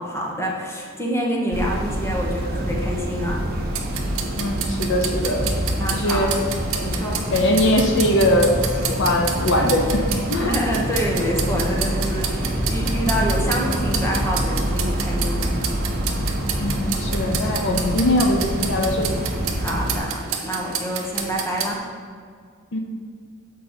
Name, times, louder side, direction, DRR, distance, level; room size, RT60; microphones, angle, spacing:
voice 1, 0.0-3.4 5.8-7.2 10.3-15.5 19.6-21.8, equal, 10° left, -2 dB, 1.1 m, -27 dB
sound 1, 1.5-20.0, right 1 dB, 50° right, 1.1 m, -26 dB
sound 2, 3.7-21.7, right 7 dB, 75° right, 0.9 m, -31 dB
voice 2, 4.4-5.4 5.9-6.3 6.7-7.0 7.3-8.6 8.9-10.6 12.8-13.2 16.6-19.2 22.7-22.8, left 1 dB, 60° left, 2 dB, 0.6 m, -21 dB
7.4 x 5.3 x 4.4 m, 2.1 s
head